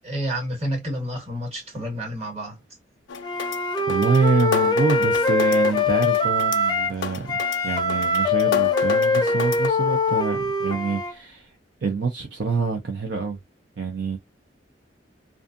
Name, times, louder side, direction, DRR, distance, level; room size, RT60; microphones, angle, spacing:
voice 1, 0.0-2.6, equal, 35° right, 1.3 m, -29 dB
Loop - Night Run, 3.1-9.7, left 5 dB, 75° left, 0.4 m, -32 dB
Wind instrument woodwind instrument, 3.2-7.0 7.3-11.1, left 3 dB, 25° left, 0.5 m, -22 dB
voice 2, 3.9-11.5 11.8-13.4 13.8-14.2, right 4 dB, 65° right, 0.5 m, -26 dB
2.6 x 2.4 x 2.4 m
head